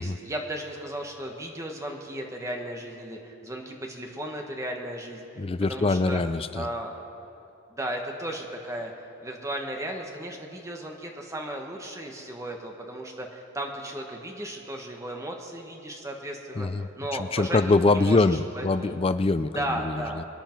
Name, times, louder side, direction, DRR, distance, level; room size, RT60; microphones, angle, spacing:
voice 1, 0.0-5.4 5.7-6.2 6.5-6.9 7.7-18.2 18.5-18.9 19.5-20.2, right 1 dB, 15° right, 1 dB, 1.2 m, -35 dB
voice 2, 5.4-6.7 16.6-16.9 17.2-20.2, left 3 dB, 25° left, 12 dB, 0.4 m, -24 dB
25.0 x 10.0 x 4.5 m, 2.8 s
head